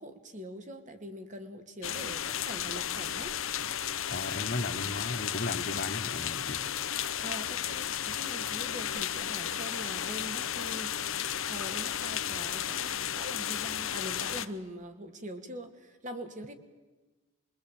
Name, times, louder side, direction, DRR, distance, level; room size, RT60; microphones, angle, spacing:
voice 1, 0.0-3.4 7.2-10.9 11.4-16.5, equal, 35° right, 6 dB, 2.3 m, -43 dB
sound 1, 1.8-14.5, left 10 dB, 70° left, 1.0 m, -34 dB
voice 2, 4.1-6.6, left 2 dB, 45° left, 9 dB, 1.3 m, -35 dB
26.0 x 23.0 x 8.9 m, 1.2 s
head